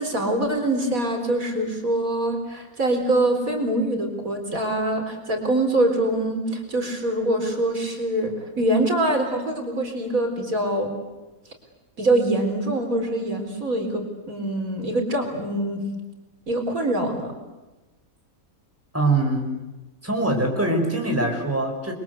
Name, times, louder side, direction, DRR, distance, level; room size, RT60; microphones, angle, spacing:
voice 1, 0.0-10.9 12.0-15.8 16.5-17.3, right 1 dB, 65° right, 4 dB, 4.6 m, -24 dB
voice 2, 18.9-19.5 20.0-21.9, right 2 dB, 10° right, 2 dB, 5.2 m, -23 dB
29.5 x 23.0 x 8.2 m, 1.1 s
omnidirectional pair, 1.6 m